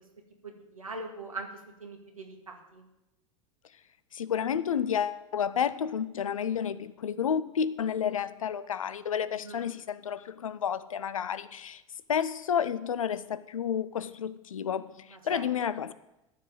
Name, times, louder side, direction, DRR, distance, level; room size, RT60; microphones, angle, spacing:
voice 1, 0.4-1.5 1.8-2.8 9.4-9.7 15.1-15.5, right 3 dB, 80° right, 2 dB, 2.0 m, -41 dB
voice 2, 4.1-11.8 12.1-15.9, left 8 dB, 75° left, 16 dB, 0.5 m, -31 dB
14.0 x 4.9 x 7.9 m, 0.92 s
figure-of-eight pair, 85°, 18 cm